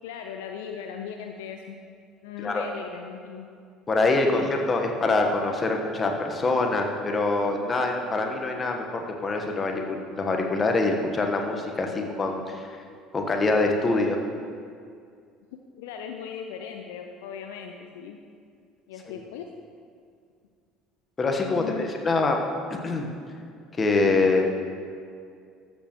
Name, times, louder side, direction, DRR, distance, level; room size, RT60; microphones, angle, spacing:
voice 1, 0.0-1.8 2.2-3.5 4.2-4.5 15.5-18.2 18.9-19.5 21.5-21.9, left 7 dB, 70° left, 4 dB, 0.5 m, -38 dB
voice 2, 3.9-12.7 13.1-14.2 21.2-22.4 22.7-23.1 23.8-24.5, left 3 dB, 30° left, 3 dB, 1.3 m, -24 dB
13.5 x 7.5 x 3.1 m, 2.3 s
figure-of-eight pair, 60°, 0 cm